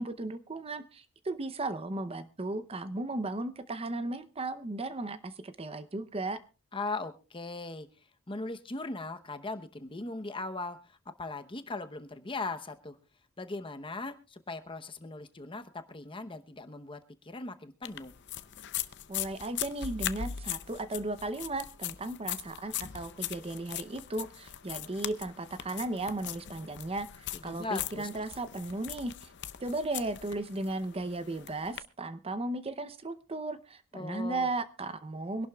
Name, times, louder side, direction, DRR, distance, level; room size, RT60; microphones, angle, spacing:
voice 1, 0.0-6.4 19.1-29.3 29.6-35.5, right 2 dB, 25° right, 12 dB, 0.7 m, -36 dB
voice 2, 6.7-7.9 8.3-13.0 13.4-18.1 27.4-28.1 33.9-34.5, left 3 dB, 25° left, 8 dB, 0.9 m, -39 dB
sound 1, 17.8-31.8, left 11 dB, 55° left, 0.6 m, -40 dB
24.5 x 11.5 x 2.3 m, 0.32 s
head